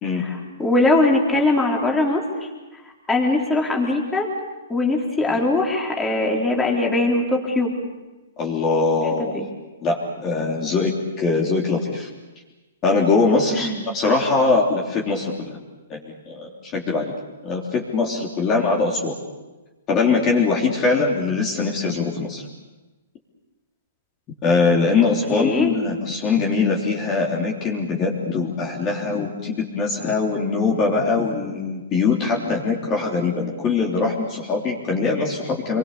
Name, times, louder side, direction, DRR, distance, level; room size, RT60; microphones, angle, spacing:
voice 1, 0.2-2.2 3.1-4.3 4.7-7.7 9.2-9.5 13.5-13.8 25.0-25.7, left 2 dB, 10° left, -1 dB, 3.9 m, -21 dB
voice 2, 8.4-9.4 9.8-10.9 11.2-12.1 12.8-15.6 15.9-17.1 17.4-19.2 19.9-22.4 24.4-35.8, left 4 dB, 25° left, -1 dB, 3.5 m, -22 dB
28.5 x 22.5 x 6.9 m, 1.1 s
hypercardioid pair, 150°, 0 cm